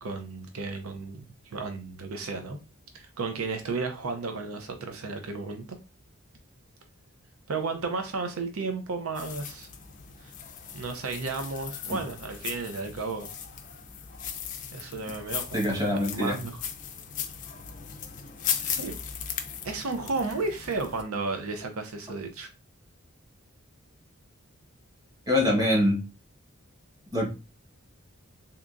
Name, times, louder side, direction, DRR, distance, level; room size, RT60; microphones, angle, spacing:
voice 1, 0.0-2.6 2.9-5.7 7.5-9.7 10.2-10.3 10.7-13.3 14.7-16.6 18.6-18.9 19.6-22.5, right 3 dB, 85° right, 6 dB, 0.6 m, -33 dB
sound 1, 9.1-21.0, left 8 dB, 35° left, 0.4 m, -37 dB
voice 2, 15.5-16.4 25.3-26.0 27.1-27.3, left 1 dB, 15° right, -3 dB, 1.1 m, -24 dB
3.6 x 2.8 x 2.5 m, 0.29 s
head